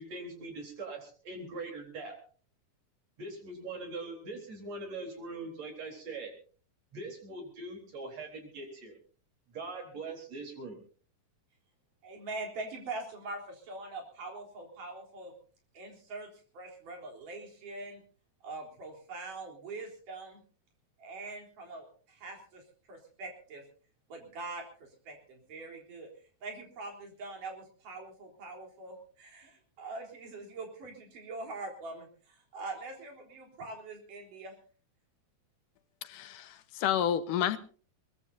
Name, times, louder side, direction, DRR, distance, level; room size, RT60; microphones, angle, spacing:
voice 1, 0.0-2.1 3.2-6.3 6.9-9.0 9.5-10.8, right 3 dB, 55° right, 3 dB, 5.1 m, -42 dB
voice 2, 12.0-15.3 15.7-16.3 16.5-18.0 18.4-20.4 21.0-22.6 22.9-23.6 24.1-26.1 26.4-34.5, right 3 dB, 85° right, 2 dB, 5.4 m, -43 dB
voice 3, 36.1-36.5 36.8-37.6, left 10 dB, 85° left, 11 dB, 2.6 m, -29 dB
22.0 x 22.0 x 2.7 m, 0.41 s
omnidirectional pair, 3.6 m